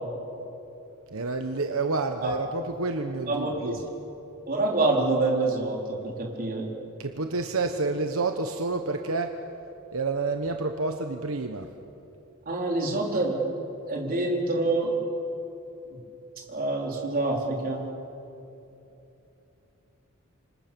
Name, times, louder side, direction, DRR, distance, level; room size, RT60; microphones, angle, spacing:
voice 1, 1.1-3.8 7.0-9.3 9.9-11.7, right 3 dB, 75° right, 5 dB, 1.2 m, -29 dB
voice 2, 3.3-3.8 4.5-6.7 12.5-13.4 13.9-14.9 16.5-17.8, right 2 dB, 45° right, -1 dB, 4.4 m, -26 dB
28.0 x 25.5 x 7.0 m, 3.0 s
head